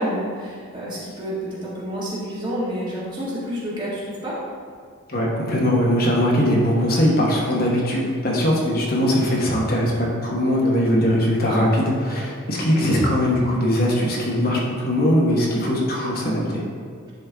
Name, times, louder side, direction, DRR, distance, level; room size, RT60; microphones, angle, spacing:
voice 1, 0.0-4.3, equal, 20° right, -8 dB, 1.7 m, -29 dB
voice 2, 5.1-16.6, equal, 45° left, -3 dB, 1.1 m, -20 dB
10.5 x 4.4 x 3.5 m, 2.1 s
head